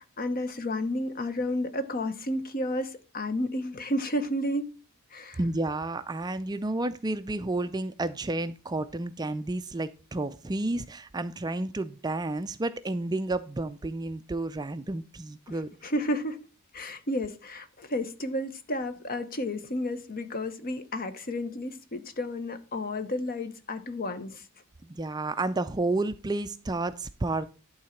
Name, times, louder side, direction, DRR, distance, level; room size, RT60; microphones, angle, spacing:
voice 1, 0.0-4.7 5.1-5.4 15.5-16.4 16.7-24.5, left 1 dB, 40° left, 0.9 m, -32 dB
voice 2, 5.4-15.7 24.8-27.5, right 2 dB, 20° right, 0.4 m, -31 dB
11.5 x 3.9 x 5.7 m
head